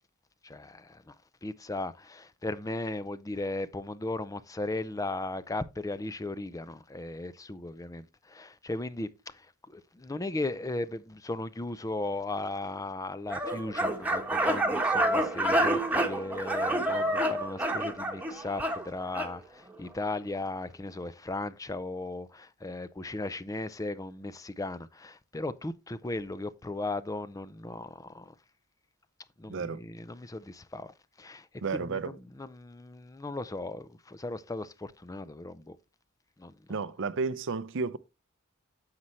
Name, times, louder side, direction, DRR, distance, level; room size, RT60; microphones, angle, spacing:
voice 1, 0.4-1.1 1.4-28.3 29.4-30.9 31.2-35.8 36.4-36.8, left 2 dB, 15° left, 0.5 m, -37 dB
sound 1, 13.3-19.3, right 1 dB, 5° right, 1.2 m, -28 dB
voice 2, 29.5-29.8 31.6-32.2 36.7-38.0, right 4 dB, 60° right, 0.6 m, -32 dB
9.7 x 7.5 x 3.2 m
head